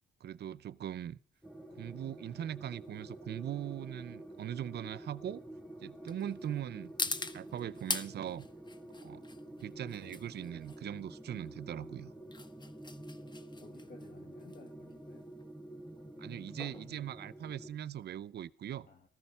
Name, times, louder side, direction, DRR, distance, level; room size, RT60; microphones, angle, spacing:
voice 1, 0.2-1.2 1.7-5.4 5.8-8.5 9.0-9.2 9.6-12.1 16.2-18.9, right 10 dB, 55° right, 0.7 m, -41 dB
sound 1, 1.4-18.0, left 3 dB, 20° left, 1.1 m, -44 dB
sound 2, 1.4-17.7, right 1 dB, ahead, 2.4 m, -49 dB
voice 2, 13.3-15.3 18.8-19.1, left 4 dB, 45° left, 1.9 m, -57 dB
14.5 x 14.0 x 5.6 m
cardioid pair, 90°, 20 cm